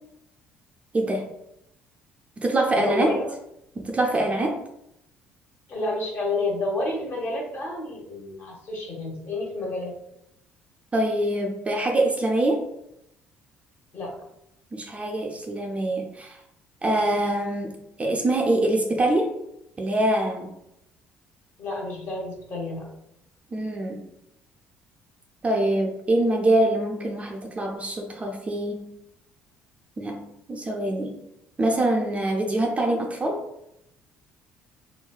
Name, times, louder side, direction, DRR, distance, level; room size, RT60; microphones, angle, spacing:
voice 1, 0.9-1.2 2.4-3.2 3.8-4.6 10.9-12.6 14.7-16.4 16.8-19.3 19.8-20.5 23.5-24.0 25.4-28.9 30.0-30.2 30.5-31.2 31.6-33.4, right 1 dB, 25° right, 1 dB, 0.4 m, -24 dB
voice 2, 2.8-3.3 5.7-9.9 13.9-14.1 21.6-22.9, left 2 dB, 40° left, -1 dB, 0.8 m, -29 dB
3.0 x 2.2 x 2.3 m, 0.81 s
figure-of-eight pair, 50°, 6 cm